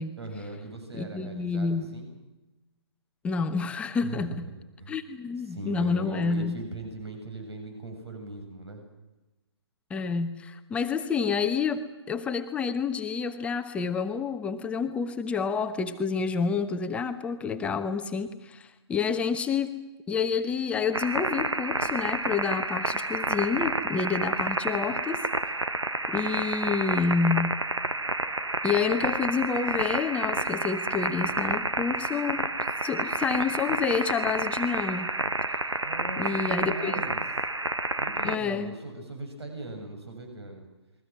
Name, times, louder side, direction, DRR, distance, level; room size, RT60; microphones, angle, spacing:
voice 1, 0.2-2.1 4.0-4.4 4.8-5.0 5.5-8.8 35.8-37.2 38.0-40.7, right 2 dB, 65° right, 4 dB, 7.3 m, -39 dB
voice 2, 0.9-1.9 3.2-4.4 4.9-6.6 9.9-19.8 20.1-25.2 26.1-27.6 28.6-32.5 32.8-35.1 36.2-36.9 38.2-38.7, left 5 dB, 10° left, 6 dB, 1.0 m, -29 dB
sound 1, 20.9-38.4, right 2 dB, 85° right, 1.3 m, -29 dB
29.5 x 22.0 x 6.2 m, 1.0 s
figure-of-eight pair, 135°, 14 cm